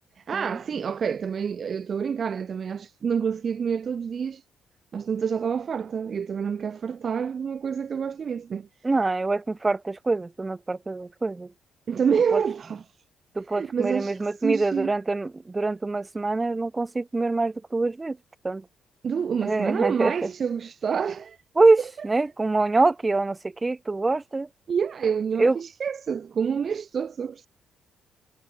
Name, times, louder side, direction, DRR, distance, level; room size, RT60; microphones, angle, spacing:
voice 1, 0.3-4.4 4.9-8.7 11.9-12.8 13.5-14.9 19.0-21.4 24.7-27.5, right 7 dB, 40° right, 1.5 m, -27 dB
voice 2, 8.8-11.5 12.3-12.4 13.3-18.2 18.4-18.6 19.4-20.1 21.6-24.5 25.4-25.6, right 3 dB, 15° right, 2.7 m, -24 dB
cardioid pair, 140°, 0 cm